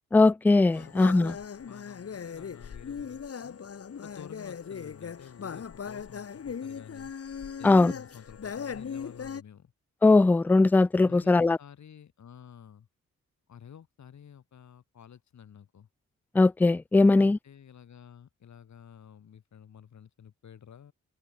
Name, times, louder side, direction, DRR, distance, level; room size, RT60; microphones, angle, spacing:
voice 1, 0.1-1.3 7.6-7.9 10.0-11.6 16.3-17.4, left 3 dB, 5° left, 0.3 m, -20 dB
voice 2, 0.7-3.6 4.0-7.1 7.6-9.7 11.0-12.9 13.5-15.9 17.0-20.9, left 8 dB, 70° left, 6.1 m, -50 dB
sound 1, 0.7-9.4, left 7 dB, 55° left, 2.0 m, -39 dB
cardioid pair, 55°, 29 cm